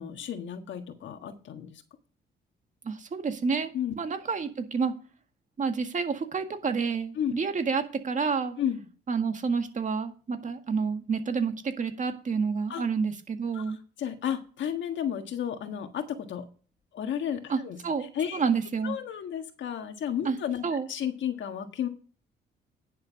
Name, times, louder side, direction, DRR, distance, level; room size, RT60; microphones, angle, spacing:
voice 1, 0.0-1.8 3.7-3.9 7.1-7.3 8.6-8.8 12.7-12.8 13.5-16.4 16.9-17.8 18.1-18.4 18.8-20.6 20.9-21.9, left 9 dB, 70° left, 6 dB, 1.6 m, -32 dB
voice 2, 2.8-3.7 4.0-4.9 5.6-8.6 9.1-13.8 17.5-18.1 18.3-19.0 20.3-20.4 20.6-20.9, right 5 dB, 40° right, 6 dB, 1.9 m, -29 dB
10.0 x 6.7 x 5.1 m, 0.38 s
cardioid pair, 90°, 20 cm